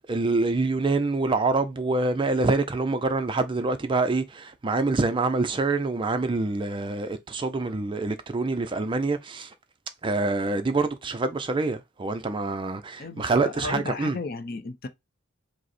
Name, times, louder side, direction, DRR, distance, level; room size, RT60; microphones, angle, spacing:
voice 1, 0.1-9.5 10.0-14.2, right 3 dB, 20° right, 0.3 m, -26 dB
voice 2, 13.0-14.9, left 4 dB, 45° left, 0.5 m, -34 dB
5.1 x 2.0 x 4.1 m
head